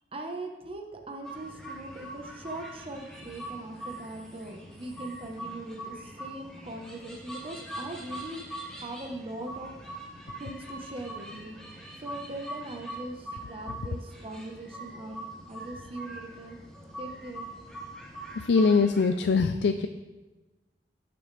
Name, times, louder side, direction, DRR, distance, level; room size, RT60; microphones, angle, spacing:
voice 1, 0.1-8.4 8.8-9.8 10.4-11.6 12.0-15.2 15.5-16.6 17.0-17.5, right 1 dB, 30° right, 2 dB, 1.1 m, -40 dB
sound 1, 1.2-19.1, right 1 dB, 5° left, 2.4 m, -43 dB
voice 2, 18.4-19.9, left 4 dB, 80° left, 9 dB, 0.4 m, -22 dB
17.5 x 6.9 x 3.3 m, 1.2 s
head